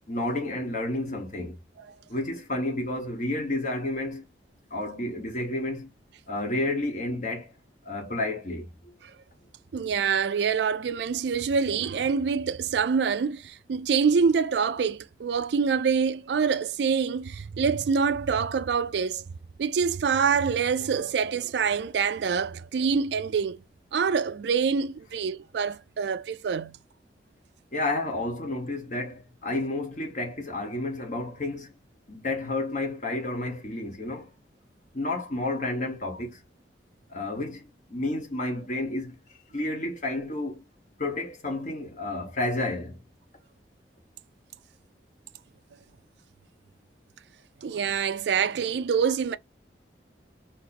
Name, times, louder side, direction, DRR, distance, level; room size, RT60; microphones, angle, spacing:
voice 1, 0.1-1.6 2.1-4.2 4.7-5.9 6.3-7.5 7.8-8.7 27.7-31.7 32.1-34.3 34.9-36.4 37.1-39.2 39.5-40.6 41.0-43.0, left 2 dB, 45° left, 1.2 m, -31 dB
voice 2, 9.7-19.2 19.6-23.6 23.9-26.8 47.6-49.4, right 6 dB, 70° right, 0.4 m, -26 dB
2.9 x 2.9 x 4.0 m
head